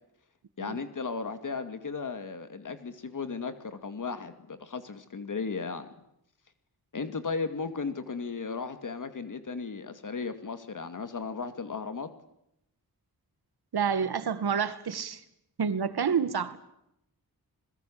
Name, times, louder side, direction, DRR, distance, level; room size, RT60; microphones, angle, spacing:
voice 1, 0.6-5.9 6.9-12.1, left 4 dB, 55° left, 2.4 m, -35 dB
voice 2, 13.7-15.2 15.6-16.6, right 6 dB, 85° right, 2.2 m, -28 dB
29.0 x 21.5 x 8.8 m
wide cardioid pair, 160°, 37 cm